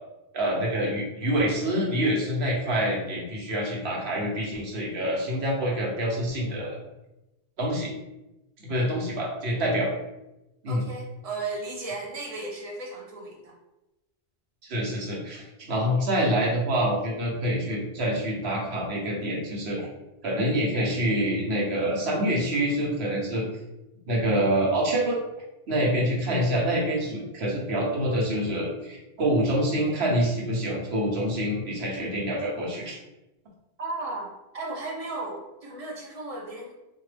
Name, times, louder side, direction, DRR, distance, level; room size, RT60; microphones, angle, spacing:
voice 1, 0.3-6.8 7.6-7.9 8.7-9.9 10.6-10.8 14.6-19.9 20.2-23.4 24.1-25.2 25.7-33.0, equal, 85° right, -2 dB, 1.2 m, -26 dB
voice 2, 10.7-13.5 33.8-36.7, right 2 dB, 40° right, -1 dB, 0.8 m, -35 dB
4.3 x 2.3 x 3.3 m, 0.96 s
omnidirectional pair, 1.1 m